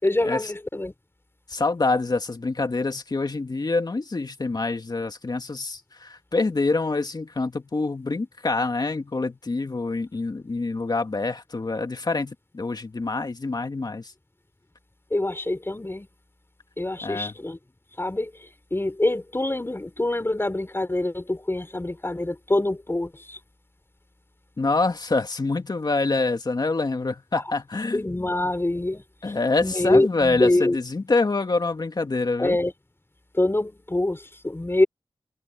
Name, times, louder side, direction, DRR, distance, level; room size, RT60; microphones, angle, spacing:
voice 1, 0.0-0.9 15.1-16.1 16.8-17.6 18.0-23.4 27.9-30.8 32.4-32.7 33.3-34.9, left 2 dB, 25° left, 4.1 m, -25 dB
voice 2, 1.5-14.1 17.0-17.3 24.6-28.0 29.2-32.6, left 3 dB, 45° left, 2.2 m, -26 dB
cardioid pair, 50°, 9 cm